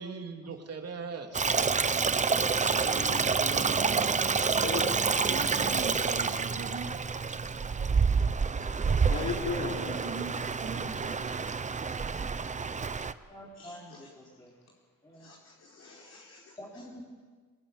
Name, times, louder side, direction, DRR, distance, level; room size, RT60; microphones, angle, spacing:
voice 1, 0.0-1.5 2.7-4.1 5.2-7.0 9.7-10.3 10.6-11.6, right 4 dB, 45° right, 3 dB, 3.5 m, -40 dB
Stream, 1.3-13.1, right 5 dB, 20° right, 0.8 m, -28 dB
voice 2, 4.6-5.3 9.0-10.1 13.6-14.0 15.2-16.5, left 4 dB, 50° left, -3 dB, 4.6 m, -38 dB
voice 3, 13.3-14.6 15.0-15.3 16.6-17.0, equal, 15° left, -6 dB, 4.7 m, -48 dB
26.0 x 21.0 x 9.4 m, 1.5 s
wide cardioid pair, 155°, 33 cm